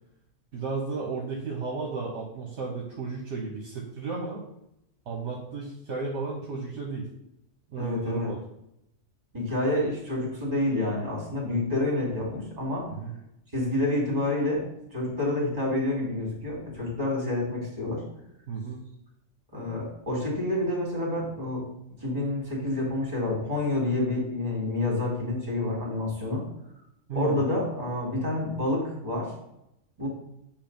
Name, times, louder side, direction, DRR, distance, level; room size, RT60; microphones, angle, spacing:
voice 1, 0.5-4.4 5.1-7.1 7.7-8.4 12.9-13.1 18.5-18.8 27.1-27.4, right 4 dB, 65° right, -1 dB, 1.2 m, -33 dB
voice 2, 7.8-8.3 9.3-12.9 13.5-14.6 14.9-18.0 19.5-21.6 22.0-26.4 27.1-29.3 30.0-30.1, left 2 dB, 35° right, -3 dB, 2.2 m, -28 dB
7.3 x 2.6 x 5.2 m, 0.81 s
omnidirectional pair, 1.3 m